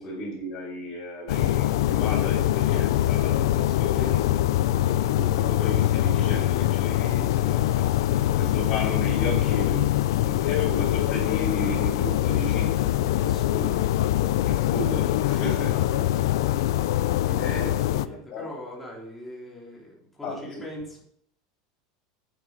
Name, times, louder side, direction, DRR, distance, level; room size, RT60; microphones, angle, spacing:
voice 1, 0.0-4.2 4.6-12.9 14.4-15.9 17.4-17.7 18.1-18.4 20.2-20.6, left 1 dB, 35° left, -8 dB, 6.4 m, -35 dB
sound 1, 1.3-18.1, left 13 dB, 90° left, 0.6 m, -23 dB
voice 2, 13.1-13.9 15.3-15.5 17.2-21.0, equal, 5° left, -5 dB, 3.4 m, -40 dB
11.0 x 9.6 x 5.1 m, 0.68 s
supercardioid pair, 180°, 2 cm